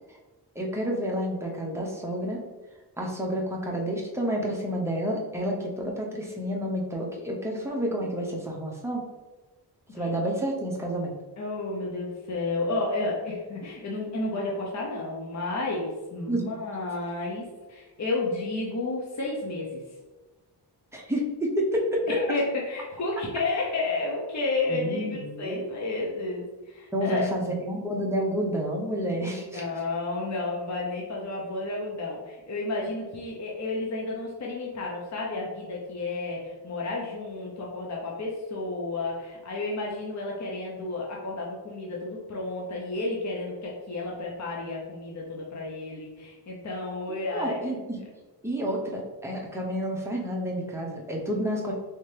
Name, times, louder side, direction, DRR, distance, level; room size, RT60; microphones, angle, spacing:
voice 1, 0.5-2.4 3.0-9.0 9.9-11.1 16.3-16.4 20.9-22.2 24.7-25.6 26.9-29.6 47.1-47.8 48.4-51.7, equal, 5° right, -2 dB, 0.6 m, -29 dB
voice 2, 11.4-19.8 22.1-27.3 29.2-47.7, left 2 dB, 40° left, -3 dB, 0.7 m, -31 dB
3.3 x 2.8 x 3.2 m, 1.2 s
wide cardioid pair, 100°, 42 cm